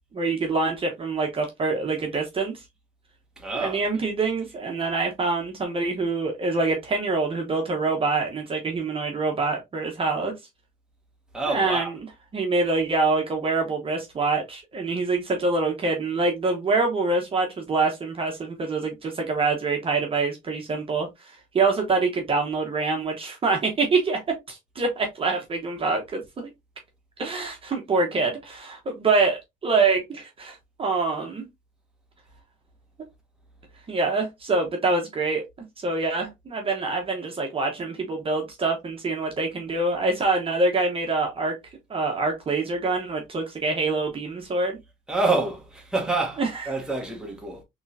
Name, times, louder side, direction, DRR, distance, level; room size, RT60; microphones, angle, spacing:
voice 1, 0.1-2.5 3.5-10.3 11.5-12.0 12.3-21.1 21.5-24.2 24.5-26.5 27.2-31.5 33.9-35.4 35.8-41.5 41.9-44.8 46.4-46.7, right 3 dB, 35° right, 1.0 m, -25 dB
voice 2, 3.4-3.8 11.3-11.9 45.1-47.6, right 3 dB, 5° right, 1.2 m, -27 dB
3.6 x 3.1 x 2.6 m
cardioid pair, 110°, 17 cm